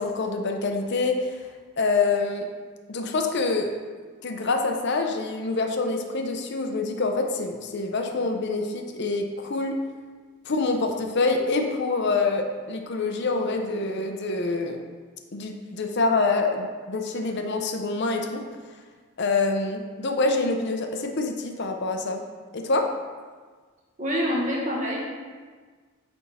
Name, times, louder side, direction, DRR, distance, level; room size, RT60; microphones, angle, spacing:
voice 1, 0.0-1.4 1.8-2.5 2.9-3.7 4.2-9.8 10.5-14.8 15.3-18.4 19.2-22.2 22.5-22.9, left 3 dB, 50° left, 4 dB, 0.6 m, -26 dB
voice 2, 24.0-25.0, equal, 35° right, -3 dB, 1.3 m, -26 dB
8.6 x 3.5 x 4.2 m, 1.5 s
head